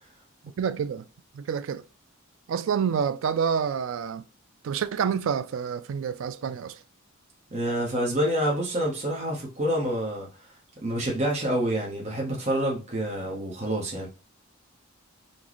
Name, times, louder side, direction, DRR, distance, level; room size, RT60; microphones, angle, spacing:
voice 1, 0.6-1.1 1.3-1.8 2.5-4.3 4.6-6.8, right 7 dB, 65° right, 0.3 m, -28 dB
voice 2, 7.5-10.3 10.8-14.1, right 1 dB, 30° right, 0.8 m, -27 dB
3.9 x 2.1 x 3.0 m
head